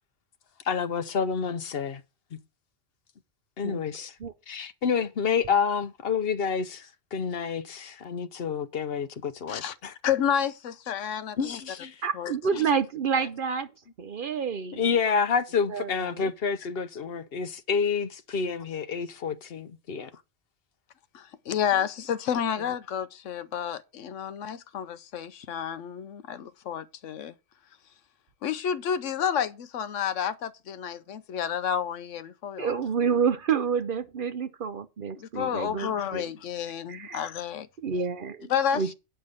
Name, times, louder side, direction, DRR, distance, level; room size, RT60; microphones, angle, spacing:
voice 1, 0.6-2.0 3.6-4.1 4.5-9.9 11.4-11.9 12.6-12.7 14.7-20.1, left 6 dB, 55° left, 0.9 m, -29 dB
voice 2, 10.0-11.6 12.1-12.3 13.2-13.3 21.1-27.3 28.4-32.7 35.1-37.7 38.5-38.9, left 8 dB, 85° left, 1.1 m, -30 dB
voice 3, 12.0-13.7 14.0-14.8 15.7-16.3 32.6-36.2 36.9-37.2 37.8-38.9, right 6 dB, 50° right, 0.7 m, -29 dB
9.0 x 5.6 x 6.6 m
omnidirectional pair, 1.3 m